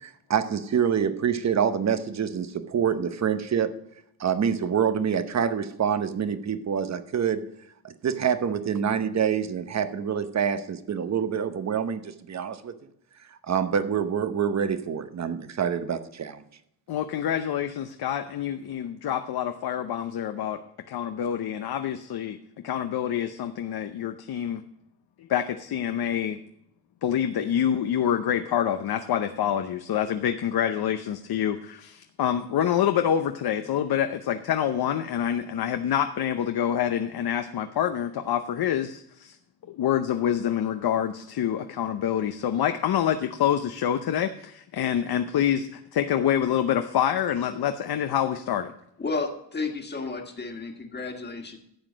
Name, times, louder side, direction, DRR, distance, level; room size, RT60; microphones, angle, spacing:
voice 1, 0.0-3.8 4.2-7.5 7.8-12.8 13.5-16.4, right 7 dB, 45° right, 11 dB, 0.9 m, -26 dB
voice 2, 16.9-20.6 20.9-22.4 22.6-24.6 25.2-26.4 27.0-39.4 39.7-48.7, left 9 dB, 70° left, 8 dB, 0.8 m, -26 dB
voice 3, 49.0-51.6, left 3 dB, 25° left, 3 dB, 1.7 m, -32 dB
12.0 x 8.1 x 5.1 m, 0.75 s
wide cardioid pair, 155°, 39 cm